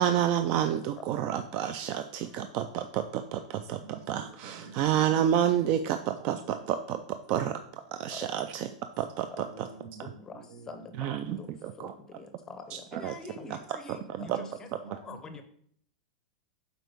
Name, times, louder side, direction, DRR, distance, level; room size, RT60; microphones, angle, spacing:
voice 1, 0.0-3.8 4.1-7.0 7.3-7.5 7.9-8.7 9.0-9.7 10.0-10.1 11.0-11.9 12.7-13.1 13.5-13.6 13.9-14.4 14.9-15.0, right 10 dB, 35° right, 8 dB, 0.3 m, -29 dB
voice 2, 3.8-6.6 9.4-11.0 14.2-15.4, right 4 dB, 80° right, 4 dB, 1.5 m, -50 dB
voice 3, 11.0-11.5 11.8-11.9 12.1-12.3 13.0-14.3 14.9-15.4, left 4 dB, 15° left, 8 dB, 0.6 m, -44 dB
7.7 x 4.6 x 3.5 m, 0.64 s
supercardioid pair, 160°, 4 cm